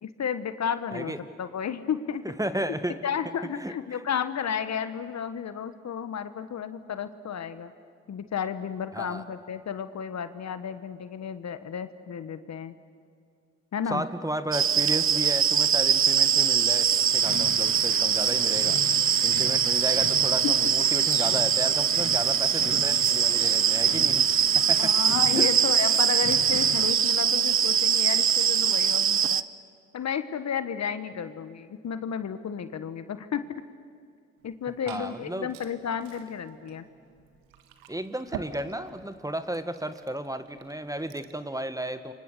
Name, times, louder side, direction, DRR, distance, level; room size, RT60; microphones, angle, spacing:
voice 1, 0.0-2.2 3.0-7.7 8.1-12.7 13.7-14.0 20.4-20.5 24.8-29.4 29.9-33.4 34.4-36.8, left 7 dB, 50° left, 11 dB, 1.4 m, -32 dB
voice 2, 2.2-3.0 3.5-4.0 8.9-9.2 13.9-18.8 19.2-25.0 25.3-25.5 34.9-35.5 37.9-42.1, right 1 dB, 10° right, 11 dB, 1.7 m, -33 dB
sound 1, 14.5-29.4, right 8 dB, 40° right, 0.8 m, -23 dB
sound 2, 17.2-26.9, left 5 dB, 35° left, 1.7 m, -40 dB
Liquid, 34.4-41.5, right 8 dB, 75° right, 1.8 m, -47 dB
29.5 x 25.0 x 6.8 m, 2.2 s
hypercardioid pair, 45°, 34 cm